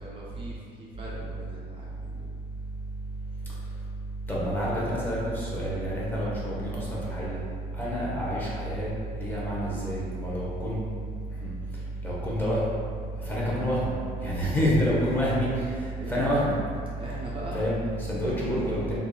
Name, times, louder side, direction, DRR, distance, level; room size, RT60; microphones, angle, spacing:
voice 1, 0.0-2.3 16.0-16.2 17.0-17.6 18.2-18.5, right 1 dB, 30° right, -6 dB, 0.5 m, -41 dB
voice 2, 4.3-7.4 7.7-10.8 11.4-11.5 12.0-12.6 13.2-13.9 14.2-16.6 17.5-19.0, equal, 10° left, -7 dB, 0.8 m, -28 dB
3.3 x 2.4 x 2.2 m, 2.2 s
cardioid pair, 110°, 17 cm